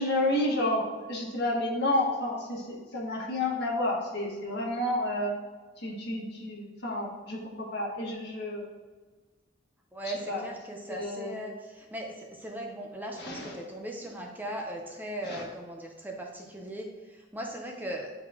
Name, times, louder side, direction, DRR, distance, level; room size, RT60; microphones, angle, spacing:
voice 1, 0.0-5.3 5.8-8.7 10.3-10.4 10.9-11.3 13.2-13.5 15.3-15.4, left 1 dB, 60° left, -3 dB, 1.6 m, -30 dB
voice 2, 9.9-18.1, right 1 dB, 10° right, 0 dB, 0.7 m, -38 dB
9.7 x 4.1 x 2.8 m, 1.3 s
head